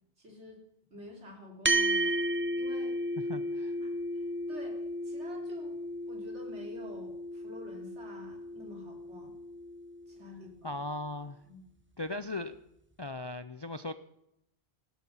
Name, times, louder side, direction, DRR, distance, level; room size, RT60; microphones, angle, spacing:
voice 1, 0.2-0.6 0.9-3.0 3.8-5.8 6.1-9.4 10.1-10.8 11.4-11.7, left 1 dB, 85° right, 1 dB, 3.6 m, -49 dB
sound 1, 1.7-10.3, right 1 dB, 15° right, 0.7 m, -34 dB
voice 2, 3.3-3.8 10.6-11.4 12.0-12.6 13.0-13.9, left 2 dB, 40° left, 12 dB, 0.3 m, -38 dB
17.0 x 12.0 x 5.5 m, 0.79 s
omnidirectional pair, 1.1 m